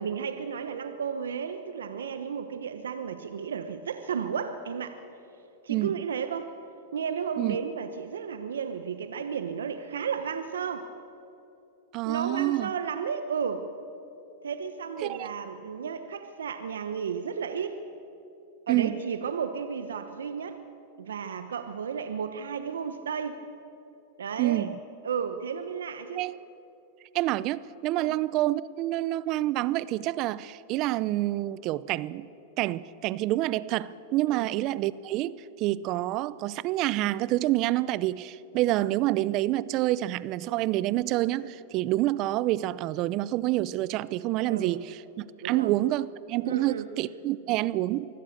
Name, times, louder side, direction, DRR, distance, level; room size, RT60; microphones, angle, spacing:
voice 1, 0.0-5.0 5.6-6.5 6.9-10.9 12.0-13.7 14.4-17.8 18.7-20.6 21.0-23.4 24.2-24.7 25.0-26.2 28.0-28.1 34.3-34.5 44.5-44.7 45.4-45.7 46.4-46.9, right 6 dB, 85° right, 9 dB, 1.0 m, -33 dB
voice 2, 11.9-12.7 15.0-15.3 18.7-18.9 24.4-24.8 26.2-26.3 27.1-32.3 32.6-48.1, right 16 dB, 45° right, 19 dB, 0.7 m, -27 dB
24.0 x 16.5 x 6.7 m, 2.9 s
hypercardioid pair, 110°, 0 cm